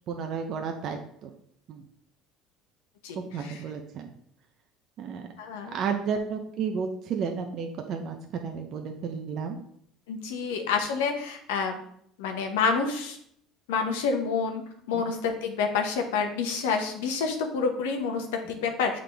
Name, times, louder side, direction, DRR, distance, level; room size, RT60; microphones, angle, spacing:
voice 1, 0.1-1.3 1.7-1.8 3.1-4.1 5.0-5.3 5.6-9.6 14.9-15.0, right 6 dB, 55° right, 4 dB, 0.6 m, -32 dB
voice 2, 3.0-3.5 5.4-5.8 10.1-11.8 12.2-13.2 13.7-19.0, left 5 dB, 90° left, 4 dB, 0.9 m, -28 dB
7.5 x 3.8 x 3.4 m, 0.68 s
supercardioid pair, 90°, 0 cm